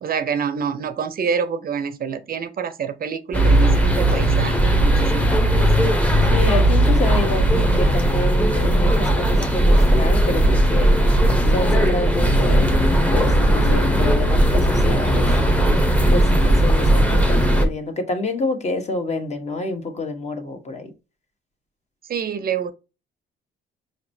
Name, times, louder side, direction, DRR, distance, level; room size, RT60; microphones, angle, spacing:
voice 1, 0.0-5.7 22.1-22.7, right 6 dB, 50° right, 0.5 m, -27 dB
sound 1, 3.3-17.6, right 1 dB, 5° left, 0.8 m, -17 dB
voice 2, 6.3-10.9 11.5-15.8 16.1-20.9, left 2 dB, 35° left, 1.0 m, -28 dB
5.3 x 2.9 x 2.6 m
cardioid pair, 90°, 20 cm